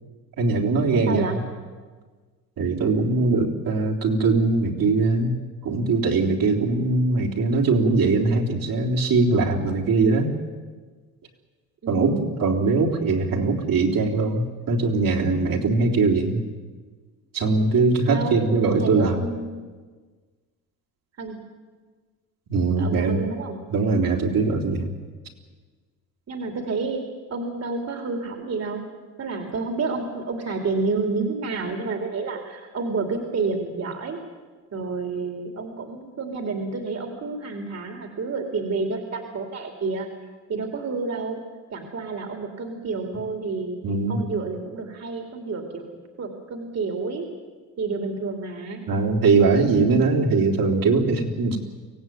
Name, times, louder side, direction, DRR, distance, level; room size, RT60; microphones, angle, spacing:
voice 1, 0.4-1.4 2.6-5.3 5.6-10.3 11.9-16.4 17.3-19.2 22.5-23.2 23.7-24.9 43.8-44.2 48.9-51.6, right 3 dB, 60° right, 0 dB, 3.8 m, -21 dB
voice 2, 0.9-1.4 11.8-12.3 18.1-19.7 21.2-21.4 22.8-23.6 26.3-27.0 27.3-28.8 29.2-34.2 34.7-40.1 40.5-41.4 41.7-43.8 44.1-45.8 46.2-47.3 47.8-48.8, right 4 dB, 45° right, 3 dB, 3.0 m, -29 dB
24.0 x 16.5 x 9.4 m, 1.4 s
cardioid pair, 105°, 37 cm